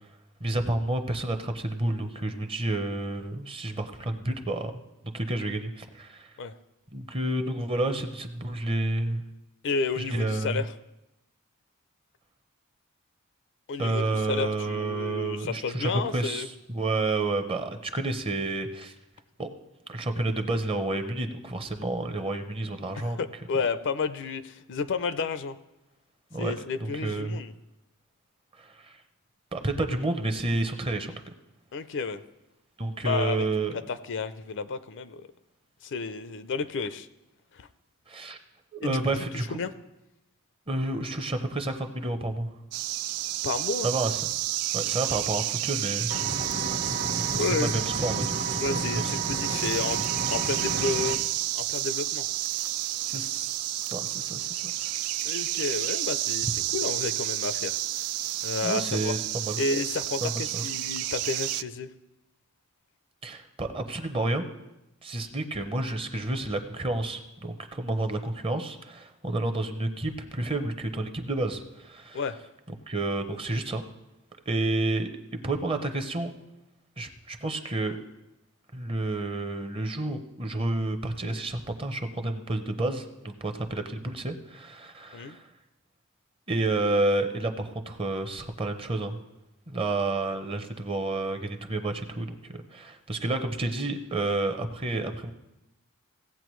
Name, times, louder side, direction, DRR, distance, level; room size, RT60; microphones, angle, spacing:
voice 1, 0.4-4.7 5.1-6.3 6.9-9.2 10.0-10.6 13.8-18.9 19.4-19.5 19.9-23.2 26.3-26.5 26.8-27.4 28.6-29.0 29.5-31.1 32.8-33.7 38.1-38.4 38.7-39.6 40.7-42.5 43.8-44.3 44.7-46.1 46.5-46.6 47.4-48.4 48.7-49.1 53.0-55.0 58.6-59.6 60.2-60.6 63.2-64.5 65.0-72.2 72.7-73.8 74.5-75.1 75.4-76.3 77.0-78.0 78.7-85.4 86.5-89.2 89.7-95.3, right 2 dB, 25° right, 7 dB, 0.7 m, -30 dB
voice 2, 9.6-10.7 13.7-16.5 23.0-25.6 26.4-27.5 31.7-32.2 33.0-33.5 33.7-35.2 35.8-37.1 37.5-37.7 38.8-39.0 39.5-39.7 43.4-43.9 47.4-47.8 48.6-50.0 50.3-51.2 51.5-52.3 55.2-57.8 58.4-59.1 59.6-61.9 72.1-72.4 85.1-85.4, left 4 dB, 55° left, 12 dB, 0.5 m, -31 dB
sound 1, 42.7-61.6, right 15 dB, 75° right, 0.3 m, -30 dB
Engine, 46.1-51.1, right 3 dB, 60° right, 1.2 m, -32 dB
16.5 x 8.4 x 3.1 m, 0.95 s
head